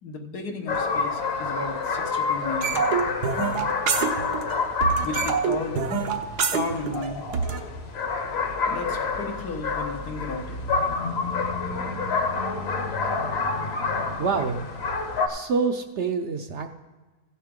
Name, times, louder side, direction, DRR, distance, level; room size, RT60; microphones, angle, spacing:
voice 1, 0.0-2.8 5.0-5.9 6.5-7.3 8.7-10.6, left 3 dB, 85° left, 2 dB, 1.8 m, -34 dB
sound 1, 0.7-15.3, left 4 dB, 45° left, 1.1 m, -28 dB
sound 2, 2.6-4.6 4.8-7.6, right 6 dB, 85° right, 1.5 m, -26 dB
voice 2, 14.2-14.6 15.3-16.7, right 5 dB, 60° right, 6 dB, 0.8 m, -26 dB
16.0 x 7.4 x 3.6 m, 1.3 s
omnidirectional pair, 1.7 m